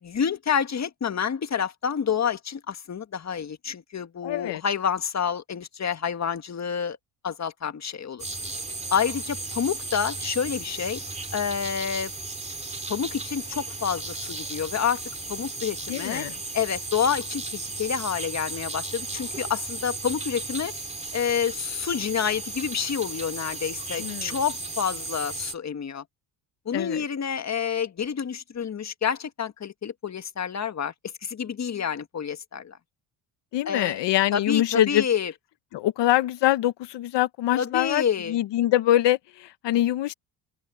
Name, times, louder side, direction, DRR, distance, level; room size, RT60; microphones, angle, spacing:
voice 1, 0.0-7.0 7.2-8.2 8.9-11.0 11.3-12.1 12.9-15.0 15.3-16.2 16.5-20.7 21.1-26.0 26.6-30.9 31.2-32.8 33.6-34.0 34.3-35.3 37.5-38.4, left 7 dB, 40° left, 1.8 m, -28 dB
voice 2, 4.2-4.6 15.9-16.4 24.0-24.4 26.7-27.0 33.5-35.0 35.7-40.1, left 13 dB, 75° left, 1.2 m, -24 dB
sound 1, 8.2-25.5, right 3 dB, 15° right, 3.1 m, -35 dB
open air
supercardioid pair, 80°, 43 cm